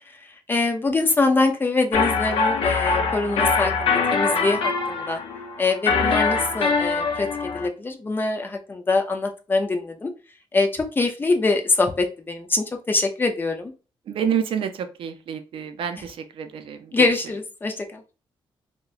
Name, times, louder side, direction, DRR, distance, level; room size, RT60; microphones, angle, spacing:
voice 1, 0.0-5.2 5.6-10.1 10.5-13.7 16.9-18.0, left 3 dB, 20° left, 4 dB, 0.4 m, -24 dB
sound 1, 1.9-7.7, left 4 dB, 65° left, 0.6 m, -23 dB
voice 2, 14.1-17.0, right 8 dB, 65° right, 8 dB, 0.4 m, -28 dB
2.8 x 2.1 x 2.3 m, 0.32 s
wide cardioid pair, 160°, 10 cm